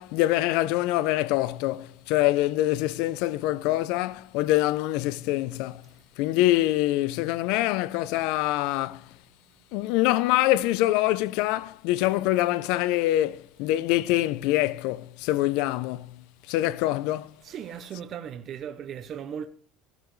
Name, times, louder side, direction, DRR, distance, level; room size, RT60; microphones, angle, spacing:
voice 1, 0.0-5.8 6.2-9.1 9.7-17.3, left 16 dB, 60° left, 0.6 m, -25 dB
voice 2, 17.4-19.5, right 8 dB, 30° right, 0.7 m, -37 dB
14.0 x 14.0 x 3.2 m
cardioid pair, 175°, 0 cm